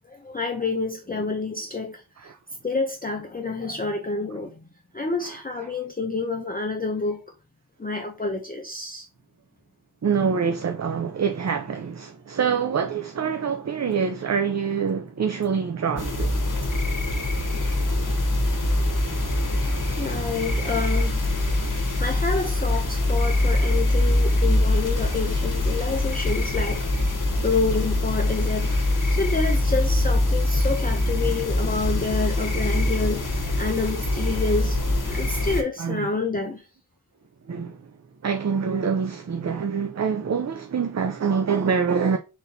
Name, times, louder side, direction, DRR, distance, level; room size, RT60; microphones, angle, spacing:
voice 1, 0.1-2.3 2.6-4.6 4.9-7.2 7.8-9.1 10.3-10.4 20.0-21.2 22.0-26.9 27.4-33.2 33.6-34.8 35.1-36.6, left 3 dB, 25° left, 0.6 m, -28 dB
voice 2, 10.0-16.3 35.8-36.1 37.5-37.8 38.2-42.2, right 6 dB, 45° right, 0.5 m, -25 dB
sound 1, 16.0-35.6, left 1 dB, 55° left, 1.1 m, -23 dB
4.1 x 4.0 x 2.7 m
wide cardioid pair, 50°, 38 cm